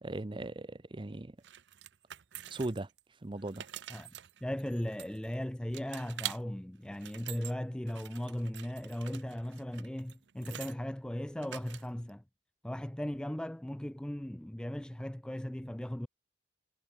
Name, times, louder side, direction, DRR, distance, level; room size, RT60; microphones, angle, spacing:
voice 1, 0.0-1.4 2.5-2.9 3.2-3.7, right 2 dB, 30° right, 0.6 m, -38 dB
sound 1, 1.4-3.0 3.4-5.4 5.7-6.4 6.8-7.5 7.9-10.8 11.4-12.1, right 12 dB, 90° right, 0.6 m, -45 dB
voice 2, 4.4-12.2 12.6-16.1, equal, 5° left, 0.3 m, -37 dB
head